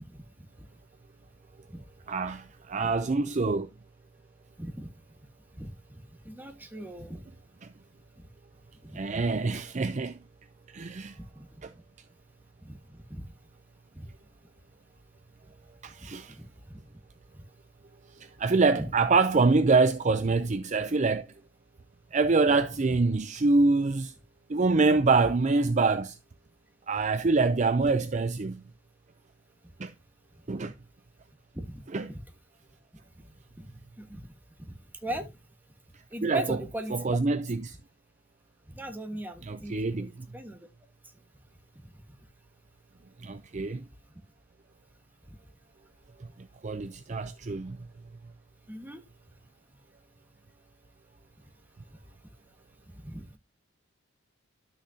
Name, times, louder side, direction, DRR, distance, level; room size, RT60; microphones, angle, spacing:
voice 1, 2.1-3.7 8.9-10.2 10.7-11.2 11.6-11.7 15.8-16.4 18.2-21.3 22.1-24.1 24.5-26.2 26.9-28.6 29.8-29.9 30.5-30.7 31.9-32.1 36.2-36.6 36.9-37.8 39.4-40.1 43.2-43.8 46.6-47.8, right 3 dB, 35° right, 0.5 m, -25 dB
voice 2, 4.6-4.9 5.5-7.2 8.8-9.4 11.2-11.5 12.6-13.3 13.9-14.1 16.3-16.8 22.9-23.0 30.6-30.7 31.5-31.8 32.1-32.2 33.6-33.7 34.0-34.3 34.6-34.8 35.0-35.3 36.1-37.2 38.7-40.7 45.3-45.4 48.7-49.0 52.9-53.4, right 1 dB, 10° right, 1.5 m, -40 dB
12.0 x 6.4 x 2.8 m
head